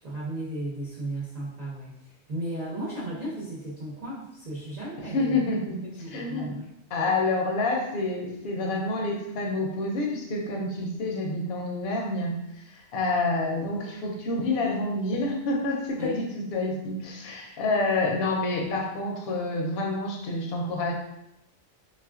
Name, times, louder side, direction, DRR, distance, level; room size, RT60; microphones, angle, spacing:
voice 1, 0.0-5.4 6.0-6.7 16.0-16.3, right 1 dB, 45° right, -7 dB, 0.6 m, -35 dB
voice 2, 5.1-5.8 6.1-6.5 6.9-20.9, left 2 dB, 65° left, 0 dB, 0.8 m, -28 dB
3.3 x 2.4 x 2.4 m, 0.86 s
omnidirectional pair, 1.2 m